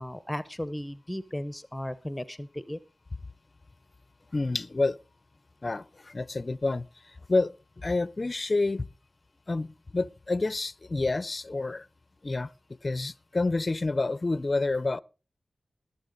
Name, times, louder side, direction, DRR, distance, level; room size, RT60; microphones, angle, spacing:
voice 1, 0.0-2.8, left 1 dB, 10° left, 0.8 m, -35 dB
voice 2, 4.3-5.0 5.6-8.9 9.5-11.9 12.2-12.5 12.8-15.0, left 3 dB, 45° left, 0.5 m, -29 dB
20.0 x 6.8 x 3.9 m
cardioid pair, 40°, 0 cm